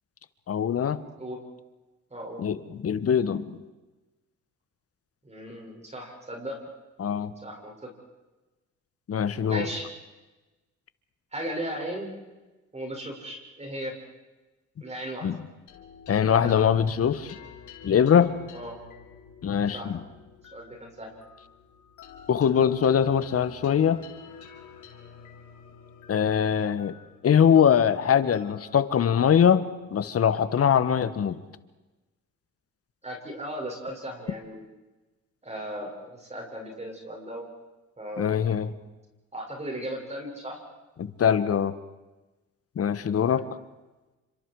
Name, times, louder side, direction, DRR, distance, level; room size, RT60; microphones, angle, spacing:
voice 1, 0.5-1.0 2.4-3.6 7.0-7.3 9.1-9.7 15.2-15.4 16.1-17.3 17.8-18.3 19.4-20.0 22.3-24.0 26.1-26.9 27.2-29.6 29.9-31.4 38.2-38.7 41.0-41.7 42.7-43.4, left 8 dB, 50° left, 14 dB, 1.5 m, -22 dB
voice 2, 2.1-2.5 5.2-6.6 7.4-7.9 9.5-9.9 11.3-12.1 12.7-13.9 14.8-15.3 16.2-16.8 18.5-18.8 19.7-19.9 20.5-21.1 33.0-34.6 35.4-37.4 38.0-38.3 39.3-40.6 43.3-43.4, right 1 dB, 20° right, 1 dB, 6.8 m, -36 dB
sound 1, 15.7-30.4, left 7 dB, 80° left, 3.6 m, -49 dB
29.5 x 26.0 x 4.9 m, 1.1 s
cardioid pair, 90°, 30 cm